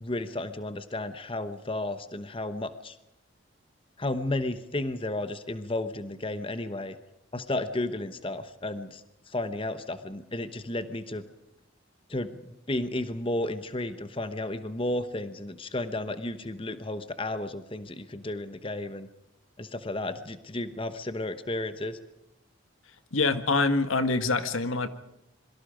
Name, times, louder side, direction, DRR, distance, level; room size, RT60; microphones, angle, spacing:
voice 1, 0.0-3.0 4.0-7.0 7.3-11.2 12.1-12.3 12.7-19.1 19.6-22.0, left 2 dB, 25° left, 11 dB, 1.0 m, -33 dB
voice 2, 23.1-24.9, left 3 dB, 85° left, 10 dB, 1.6 m, -25 dB
27.0 x 23.0 x 5.1 m, 0.83 s
head